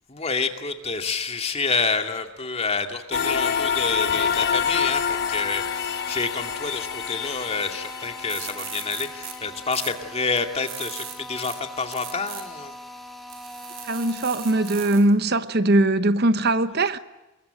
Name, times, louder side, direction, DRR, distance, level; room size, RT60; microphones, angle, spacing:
voice 1, 0.1-12.7, left 4 dB, 30° left, 2.4 m, -28 dB
sound 1, 3.1-9.3, left 7 dB, 50° left, 1.1 m, -27 dB
Drill, 4.1-15.1, left 1 dB, ahead, 3.1 m, -41 dB
sound 2, 8.0-8.1 8.3-9.3 9.7-9.9 10.4-11.5 11.9-12.4 13.3-15.1, right 10 dB, 70° right, 4.6 m, -38 dB
voice 2, 13.9-17.0, right 2 dB, 50° right, 0.9 m, -21 dB
27.5 x 22.0 x 9.1 m
head